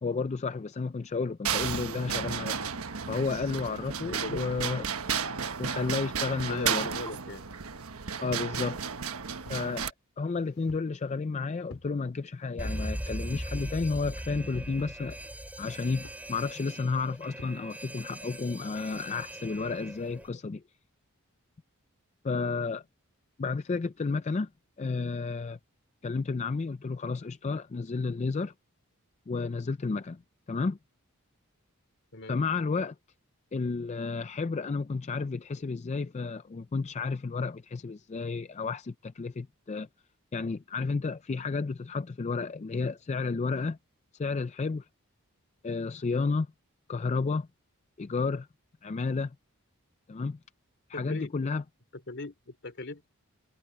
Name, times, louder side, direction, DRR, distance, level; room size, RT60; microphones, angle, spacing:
voice 1, 0.0-2.6 3.1-4.8 5.6-6.9 8.2-8.8 9.5-9.9 10.2-15.2 15.6-20.6 22.2-22.8 23.4-24.5 24.8-25.6 26.0-28.5 29.3-30.2 30.5-30.8 32.3-32.9 33.5-39.9 40.3-43.8 44.1-44.9 45.6-46.5 46.9-47.5 48.0-48.5 48.8-49.3 50.1-50.4 50.9-51.6, left 4 dB, 30° left, 0.4 m, -31 dB
sound 1, 1.4-9.9, right 6 dB, 85° right, 1.2 m, -33 dB
voice 2, 4.0-4.4 6.4-7.4 32.1-32.4 50.9-51.3 52.1-53.1, left 2 dB, 55° left, 3.2 m, -39 dB
sound 2, 9.4-9.7 10.3-11.0 11.7-12.0 12.6-12.9 13.7-14.0 14.8-15.1 16.0-16.3 17.4-17.6, left 1 dB, 85° left, 2.5 m, -50 dB
Alarm, 12.6-20.3, equal, 5° right, 2.6 m, -39 dB
head